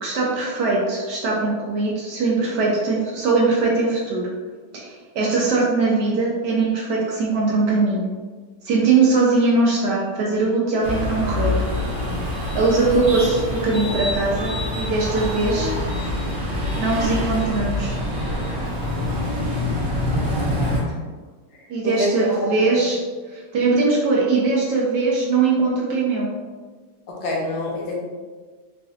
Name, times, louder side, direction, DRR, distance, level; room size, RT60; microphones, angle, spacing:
voice 1, 0.0-4.2 4.7-8.1 8.6-11.5 12.5-15.7 16.8-18.0 21.7-23.0 23.3-26.3, right 3 dB, 75° right, -4 dB, 0.9 m, -21 dB
sound 1, 10.8-20.8, left 1 dB, 50° right, 0.9 m, -25 dB
voice 2, 21.8-22.8 27.1-27.9, left 1 dB, 70° left, -2 dB, 1.2 m, -26 dB
4.1 x 2.5 x 2.4 m, 1.4 s
omnidirectional pair, 2.4 m